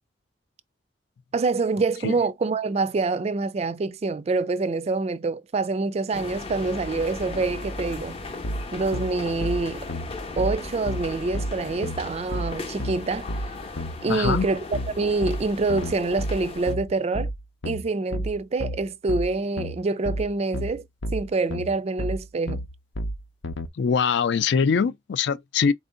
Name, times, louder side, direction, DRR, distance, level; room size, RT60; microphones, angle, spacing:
voice 1, 1.3-8.2 8.7-9.9 10.4-13.3 14.0-17.3 17.6-20.9 21.1-22.6, right 3 dB, 35° right, 0.4 m, -26 dB
sound 1, 6.1-16.7, left 3 dB, 30° left, 0.7 m, -37 dB
sound 2, 8.4-23.7, equal, 90° left, 0.8 m, -31 dB
voice 2, 14.1-14.5 23.8-25.7, left 6 dB, 65° left, 0.4 m, -22 dB
4.2 x 2.6 x 3.7 m
head